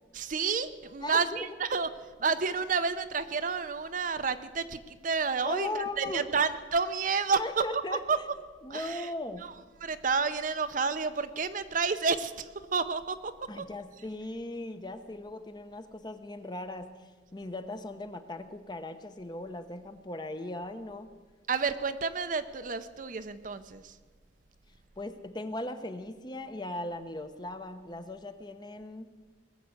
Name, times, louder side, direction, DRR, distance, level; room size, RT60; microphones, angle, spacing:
voice 1, 0.1-1.9 2.2-7.8 8.1-8.2 8.7-9.1 9.4-9.5 9.8-13.6 21.5-24.0, right 5 dB, 45° right, 11 dB, 0.7 m, -30 dB
voice 2, 1.0-1.5 5.4-6.3 7.4-8.3 8.6-9.5 13.5-16.9 17.3-21.1 25.0-29.1, left 2 dB, 25° left, 9 dB, 0.8 m, -38 dB
19.5 x 7.6 x 8.3 m, 1.3 s
head